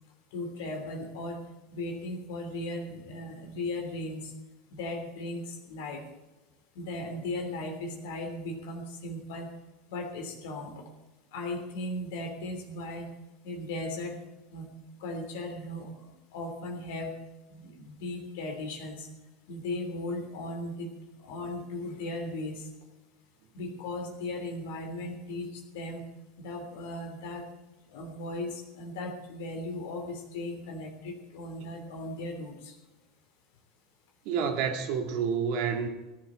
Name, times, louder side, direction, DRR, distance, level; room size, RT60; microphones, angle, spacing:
voice 1, 0.3-1.4 1.7-4.3 4.7-6.0 6.7-9.5 9.9-10.8 11.3-13.1 13.4-14.2 14.5-14.7 15.0-17.1 17.5-19.1 19.5-20.9 21.2-22.7 23.5-26.0 26.4-27.5 27.9-32.8, left 2 dB, 65° left, 3.1 m, -37 dB
voice 2, 34.3-35.9, right 6 dB, 55° right, 2.1 m, -29 dB
17.5 x 11.5 x 4.3 m
figure-of-eight pair, 80°, 0 cm